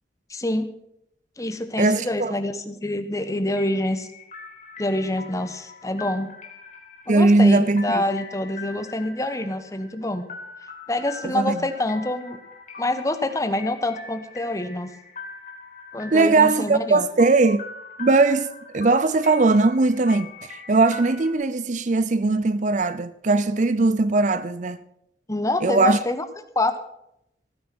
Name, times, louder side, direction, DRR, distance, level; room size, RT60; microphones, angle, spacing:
voice 1, 0.3-0.7 1.4-4.1 4.8-6.3 7.1-10.3 10.9-12.4 12.8-14.9 15.9-17.1 25.3-26.3 26.5-26.8, left 1 dB, 15° left, 1.1 m, -26 dB
voice 2, 1.8-2.4 7.1-8.0 11.2-11.6 16.1-17.6 18.0-18.5 18.7-24.8 25.6-26.0, right 3 dB, 40° right, 0.5 m, -19 dB
sound 1, 3.5-21.3, left 4 dB, 40° left, 3.5 m, -42 dB
15.5 x 10.0 x 6.1 m
head